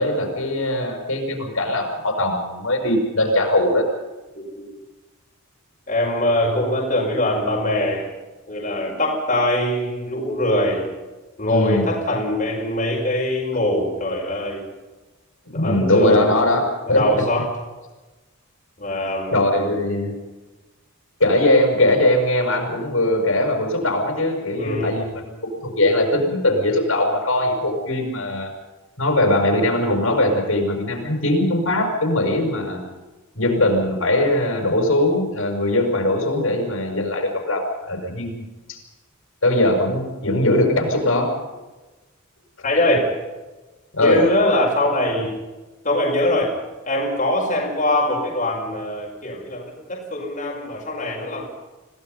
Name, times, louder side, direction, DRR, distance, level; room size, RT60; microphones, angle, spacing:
voice 1, 0.0-3.8 11.5-12.0 15.5-17.3 19.3-20.1 21.2-28.5 29.0-32.8 33.3-38.4 38.7-38.8 39.4-41.4 43.9-44.2, left 1 dB, 70° left, 3 dB, 6.7 m, -20 dB
voice 2, 4.4-4.8 5.9-8.1 8.5-10.8 11.4-14.6 15.5-16.6 16.9-17.5 18.8-19.6 24.6-25.1 32.4-32.6 42.6-43.0 44.0-45.3 45.8-46.5 46.8-51.4, left 1 dB, 35° left, -2 dB, 5.4 m, -22 dB
27.0 x 18.0 x 5.6 m, 1.2 s
head